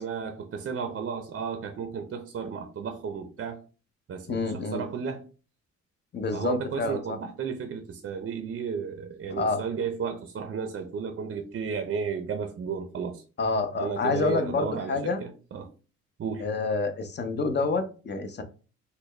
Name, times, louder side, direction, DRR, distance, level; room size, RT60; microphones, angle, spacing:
voice 1, 0.0-3.6 4.1-5.3 6.3-13.2 13.7-15.7 16.2-16.5, right 6 dB, 40° right, 0.5 m, -33 dB
voice 2, 4.3-4.8 6.1-7.2 9.3-9.6 13.4-15.2 16.4-18.4, left 3 dB, 35° left, 0.7 m, -28 dB
3.9 x 2.2 x 3.2 m
cardioid pair, 90°, 30 cm